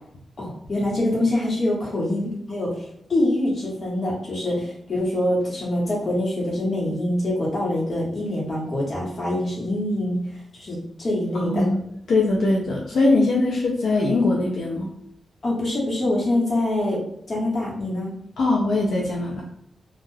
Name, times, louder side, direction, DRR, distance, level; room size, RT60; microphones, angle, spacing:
voice 1, 0.4-10.2 10.5-11.7 15.4-17.0 17.3-18.1, left 1 dB, 45° left, -5 dB, 1.2 m, -25 dB
voice 2, 11.3-11.8 12.1-14.9 18.4-19.4, left 2 dB, 80° left, -3 dB, 0.5 m, -21 dB
2.4 x 2.2 x 3.1 m, 0.72 s
wide cardioid pair, 110°, 0 cm